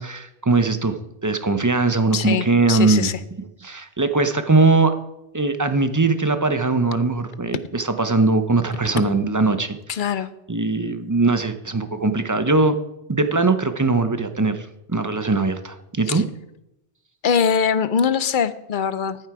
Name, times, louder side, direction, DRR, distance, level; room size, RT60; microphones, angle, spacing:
voice 1, 0.0-3.1 3.6-5.0 5.3-9.8 10.5-12.8 13.1-16.2, right 3 dB, 25° right, 9 dB, 0.5 m, -20 dB
voice 2, 2.1-3.2 9.9-10.3 16.1-16.2 17.2-19.2, left 7 dB, 55° left, 13 dB, 0.8 m, -22 dB
13.5 x 7.6 x 4.8 m, 0.87 s
omnidirectional pair, 1.1 m